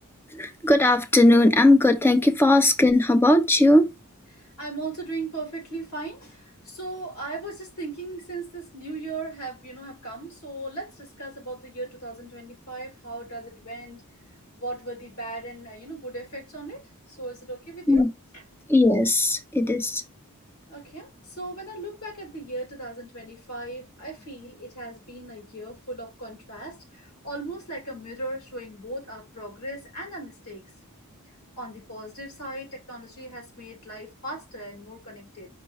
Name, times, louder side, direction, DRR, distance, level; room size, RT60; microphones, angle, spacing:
voice 1, 0.3-3.9 17.9-18.1 18.7-20.0, left 1 dB, 10° left, 0.5 m, -18 dB
voice 2, 4.3-14.1 14.6-16.8 17.1-18.0 20.7-30.7 31.6-35.5, right 2 dB, 90° left, 2.8 m, -37 dB
5.4 x 2.1 x 4.6 m
head